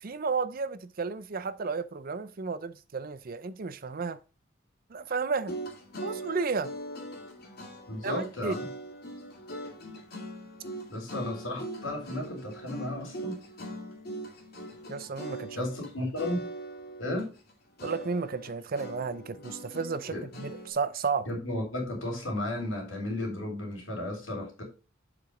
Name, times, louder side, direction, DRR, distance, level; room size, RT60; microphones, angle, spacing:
voice 1, 0.0-4.2 4.9-5.5 6.0-6.7 8.0-8.5 14.9-15.6 17.8-21.4, right 4 dB, 45° right, 0.5 m, -32 dB
sound 1, 5.4-15.9 16.2-17.5 17.8-20.7, right 1 dB, 50° left, 2.4 m, -41 dB
voice 2, 7.9-8.7 10.9-13.4 15.5-16.5 17.0-17.3 20.1-20.2 21.2-24.6, left 1 dB, 80° left, 3.3 m, -34 dB
7.3 x 4.8 x 5.0 m
head